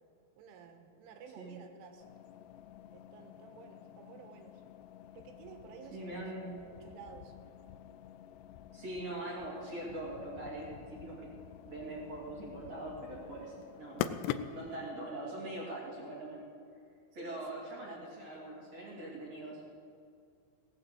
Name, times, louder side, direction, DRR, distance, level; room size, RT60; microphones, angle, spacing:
voice 1, 0.4-2.1 2.9-4.6 5.2-7.3 17.2-18.1, right 6 dB, 80° right, 5 dB, 3.7 m, -53 dB
sound 1, 2.0-14.9, left 10 dB, 85° left, 2.5 m, -45 dB
voice 2, 5.9-6.6 8.7-11.3 11.6-14.2 14.5-16.5 17.1-19.6, right 1 dB, 40° right, -4 dB, 2.9 m, -42 dB
18.0 x 7.8 x 7.8 m, 2.4 s
omnidirectional pair, 5.6 m